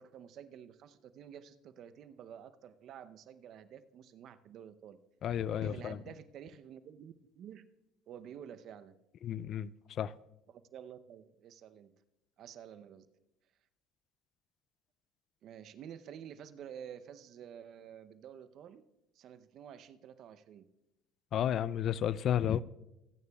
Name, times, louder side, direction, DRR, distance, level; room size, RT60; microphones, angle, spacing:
voice 1, 0.0-5.0 5.5-7.6 8.1-9.0 10.5-11.9 12.4-13.1 15.4-18.9 19.1-20.7, right 9 dB, 60° right, 0.7 m, -50 dB
voice 2, 5.2-6.0 9.2-9.7 10.0-10.1 21.3-22.6, left 10 dB, 55° left, 0.3 m, -32 dB
25.0 x 9.4 x 2.3 m
hypercardioid pair, 75°, 0 cm